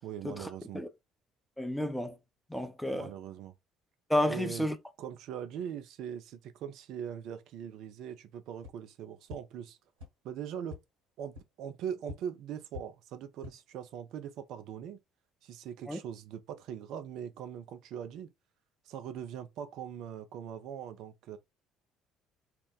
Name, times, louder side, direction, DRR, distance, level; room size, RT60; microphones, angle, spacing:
voice 1, 0.0-0.8 2.9-3.5 4.2-4.7 5.0-9.8 10.2-10.8 11.2-15.0 15.4-18.3 18.9-21.4, right 9 dB, 60° right, 0.4 m, -41 dB
voice 2, 1.6-2.2 2.5-3.1 4.1-4.8 15.9-16.0, left 1 dB, 5° left, 0.5 m, -31 dB
sound 1, 8.6-8.7 9.3-9.4 10.0-10.1 10.6-10.8 11.3-11.4 12.0-12.1 12.7-12.8 13.3-13.5, left 3 dB, 80° right, 1.5 m, -43 dB
2.9 x 2.1 x 3.7 m
hypercardioid pair, 55°, 0 cm